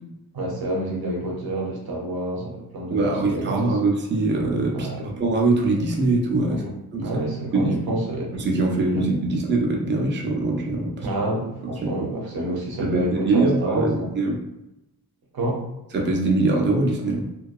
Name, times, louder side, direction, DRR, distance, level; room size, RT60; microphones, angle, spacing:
voice 1, 0.3-3.8 4.7-5.0 6.5-6.7 7.0-8.3 8.9-9.0 11.0-14.1 15.3-15.6, right 1 dB, 75° right, -1 dB, 0.7 m, -28 dB
voice 2, 2.9-6.6 6.9-7.1 7.5-7.8 8.3-11.1 12.8-14.4 15.9-17.3, right 2 dB, 30° right, 0 dB, 0.4 m, -22 dB
2.6 x 2.2 x 2.2 m, 0.92 s
wide cardioid pair, 175°, 37 cm